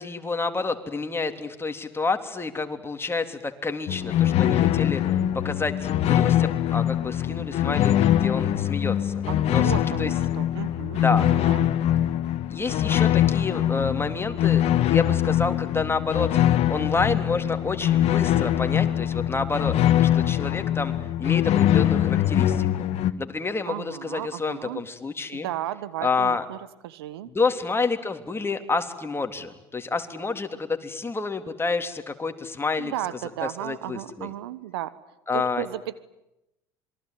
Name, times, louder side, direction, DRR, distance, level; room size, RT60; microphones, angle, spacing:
voice 1, 0.0-9.2 9.5-10.1 11.0-11.3 12.5-16.4 16.7-22.9 23.2-25.5 26.0-26.4 27.3-32.9 33.6-34.3 35.3-35.7, left 4 dB, 20° left, 6 dB, 3.5 m, -29 dB
sound 1, 3.9-23.1, left 11 dB, 55° left, 1.7 m, -23 dB
voice 2, 9.3-11.7 23.7-24.8 25.3-26.6 26.8-27.3 32.8-35.0 35.3-36.0, right 13 dB, 80° right, 16 dB, 1.3 m, -34 dB
27.0 x 23.0 x 9.4 m, 0.90 s
hypercardioid pair, 65°, 13 cm